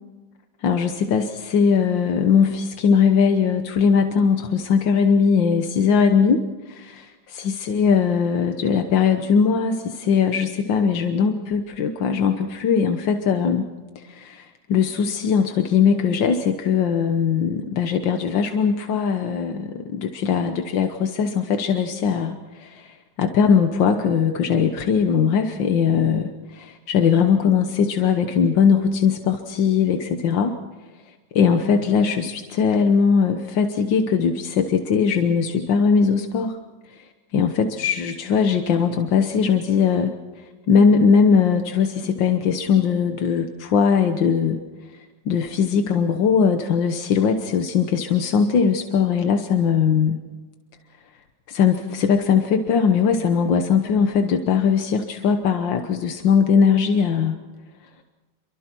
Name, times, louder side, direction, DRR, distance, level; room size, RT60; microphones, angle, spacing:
voice 1, 0.6-13.7 14.0-30.5 31.3-36.6 36.9-37.1 37.3-40.1 40.7-44.6 45.3-50.2 51.5-57.4, left 6 dB, 85° left, 6 dB, 1.8 m, -20 dB
29.0 x 24.0 x 4.5 m, 1.3 s
omnidirectional pair, 2.0 m